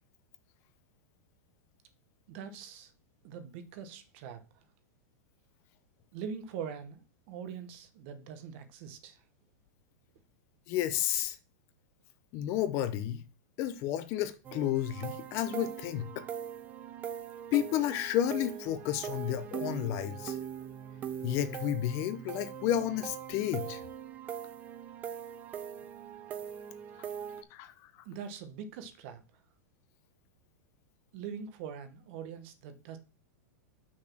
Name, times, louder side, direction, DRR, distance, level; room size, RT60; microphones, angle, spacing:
voice 1, 2.3-2.9 3.2-4.6 6.1-9.2 28.0-29.4 31.1-33.0, right 7 dB, 40° right, 1.0 m, -43 dB
voice 2, 10.7-11.4 12.3-13.2 13.6-16.3 17.5-20.4 21.2-23.8 27.0-27.1 27.5-27.7, left 12 dB, 30° left, 0.5 m, -31 dB
sound 1, 14.4-27.4, right 8 dB, 15° right, 0.4 m, -41 dB
6.1 x 4.1 x 5.8 m
supercardioid pair, 165°, 9 cm